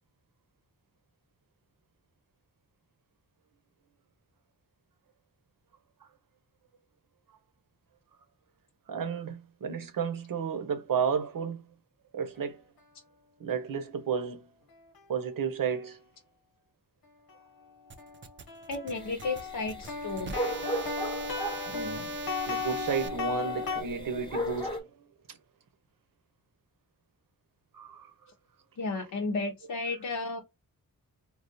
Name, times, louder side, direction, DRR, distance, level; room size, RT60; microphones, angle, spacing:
voice 1, 8.9-11.6 12.1-12.6 13.4-14.5 15.1-16.0 21.7-22.1 22.5-24.9 25.3-25.4 27.7-28.1, right 6 dB, 70° right, 0.8 m, -32 dB
sound 1, 17.3-17.4 18.0-23.8, left 5 dB, 85° left, 1.1 m, -36 dB
sound 2, 17.9-23.1, right 5 dB, 35° right, 0.5 m, -42 dB
voice 2, 18.7-20.3 28.8-30.4, left 3 dB, 60° left, 0.7 m, -33 dB
sound 3, 19.0-24.8, equal, 15° left, 0.9 m, -37 dB
3.4 x 2.4 x 2.6 m
wide cardioid pair, 85°, 35 cm